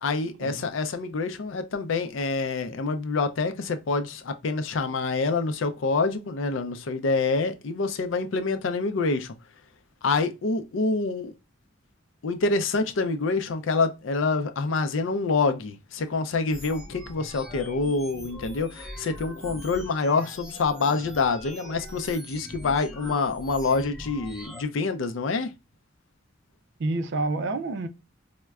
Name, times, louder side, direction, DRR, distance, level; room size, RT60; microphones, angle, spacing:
voice 1, 0.0-9.3 10.0-11.3 12.2-25.5, left 4 dB, 80° left, 0.5 m, -26 dB
sound 1, 16.5-24.6, equal, ahead, 0.7 m, -42 dB
voice 2, 26.8-27.9, right 2 dB, 60° right, 0.4 m, -28 dB
4.4 x 2.1 x 2.3 m
head